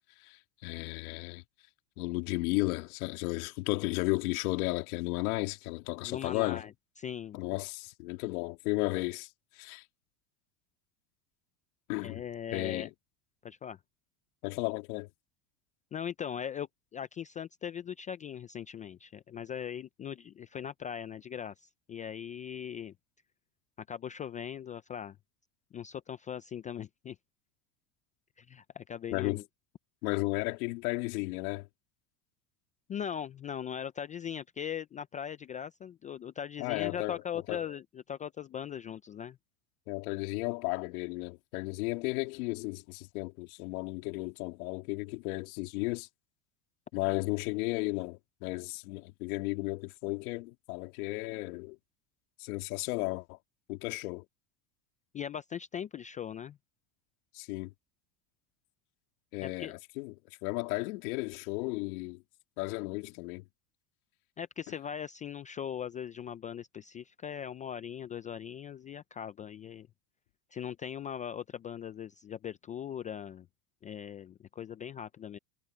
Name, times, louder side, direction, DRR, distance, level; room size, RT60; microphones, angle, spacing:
voice 1, 0.2-1.4 2.0-6.6 7.3-9.3 9.5-9.8 11.9-12.2 12.5-12.9 14.4-15.1 29.1-29.4 30.0-31.7 36.6-37.2 37.5-37.6 39.9-46.1 46.9-51.8 52.4-53.4 53.7-54.2 57.3-57.7 59.3-60.1 60.4-62.2 62.6-63.4, left 23 dB, 80° left, 3.1 m, -34 dB
voice 2, 6.0-6.7 7.0-7.4 12.0-12.9 13.4-13.8 15.9-22.9 23.8-25.2 25.7-27.2 28.4-29.4 32.9-39.4 55.1-56.6 59.4-59.7 64.4-69.9 70.5-73.5 73.8-75.4, left 8 dB, 20° left, 0.3 m, -40 dB
supercardioid pair, 125°, 43 cm